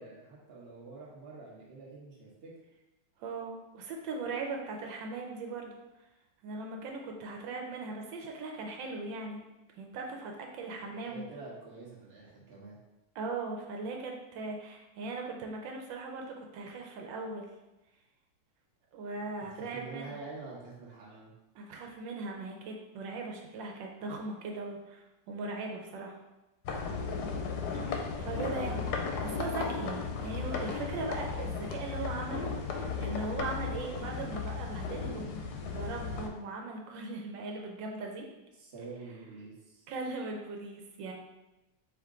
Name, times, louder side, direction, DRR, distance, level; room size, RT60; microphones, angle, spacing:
voice 1, 0.0-2.6 10.7-12.8 19.4-21.3 38.5-39.9, right 3 dB, 40° right, -4 dB, 1.1 m, -47 dB
voice 2, 3.2-5.7 6.4-9.5 9.8-11.2 13.1-17.5 18.9-20.1 21.5-26.2 27.7-38.3 39.9-41.1, right 3 dB, 85° right, 1 dB, 1.4 m, -39 dB
sound 1, 26.6-36.3, left 5 dB, 70° left, 1.0 m, -35 dB
4.8 x 2.9 x 3.7 m, 1.0 s
omnidirectional pair, 2.0 m